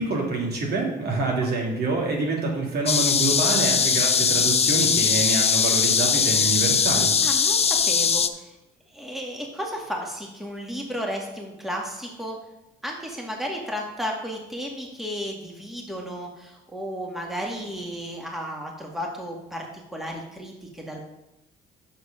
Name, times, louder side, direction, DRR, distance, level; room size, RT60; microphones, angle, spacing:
voice 1, 0.0-7.1, right 3 dB, 55° right, -1 dB, 2.9 m, -26 dB
sound 1, 2.9-8.3, left 6 dB, 30° left, 0.6 m, -21 dB
voice 2, 7.2-8.6 8.9-12.4 12.8-21.1, equal, ahead, -1 dB, 2.0 m, -33 dB
6.7 x 6.5 x 5.6 m, 0.91 s
supercardioid pair, 70°, 20 cm